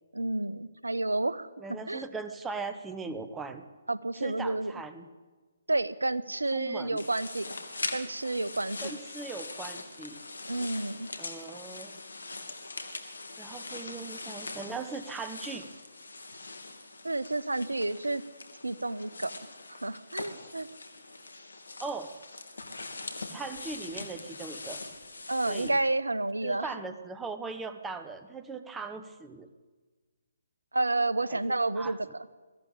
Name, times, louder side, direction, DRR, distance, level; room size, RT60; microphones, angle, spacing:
voice 1, 0.1-2.0 3.9-4.7 5.7-7.5 7.9-8.9 10.5-11.1 17.0-18.2 18.6-19.3 19.7-20.7 25.3-26.7 30.7-32.3, right 2 dB, 80° right, 15 dB, 1.1 m, -30 dB
voice 2, 1.6-3.7 4.2-5.1 6.5-7.0 8.8-10.2 11.2-12.0 13.4-15.7 21.8-22.1 23.3-24.8 25.5-25.8 26.4-29.5 31.3-31.4 31.8-31.9, right 4 dB, 10° right, 9 dB, 1.2 m, -39 dB
sound 1, 7.0-25.7, left 3 dB, 70° left, 2.8 m, -42 dB
22.0 x 15.0 x 8.6 m, 1.3 s
figure-of-eight pair, 135°, 0 cm